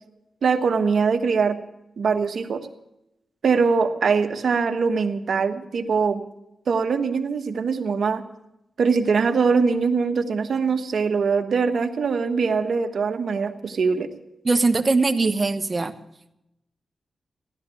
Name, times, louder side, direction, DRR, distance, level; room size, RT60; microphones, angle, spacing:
voice 1, 0.4-1.6 2.0-2.7 3.4-6.2 6.7-8.2 8.8-14.1, right 5 dB, 75° right, 7 dB, 1.3 m, -22 dB
voice 2, 14.4-15.9, right 3 dB, 35° right, 9 dB, 1.2 m, -21 dB
16.0 x 12.0 x 6.9 m, 0.86 s
cardioid pair, 65°, 0 cm